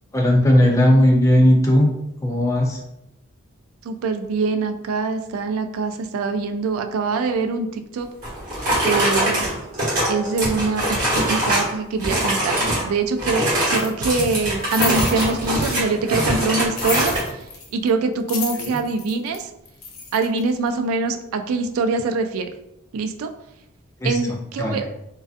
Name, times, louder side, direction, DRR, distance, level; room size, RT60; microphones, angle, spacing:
voice 1, 0.1-1.9 2.2-2.8 18.5-18.7 24.0-24.2 24.6-24.9, left 1 dB, 15° left, 0 dB, 0.3 m, -16 dB
voice 2, 3.8-8.1 8.8-9.5 10.1-17.4 17.7-19.5 20.1-22.5 22.9-23.3 24.0-24.9, right 4 dB, 85° right, 7 dB, 0.3 m, -24 dB
sound 1, 8.2-11.7 12.0-12.9 13.2-17.3, right 1 dB, 40° right, 1.1 m, -22 dB
sound 2, 13.8-16.0 16.7-17.9 18.1-20.5, left 5 dB, 80° left, 0.5 m, -31 dB
2.4 x 2.3 x 2.4 m, 0.83 s
head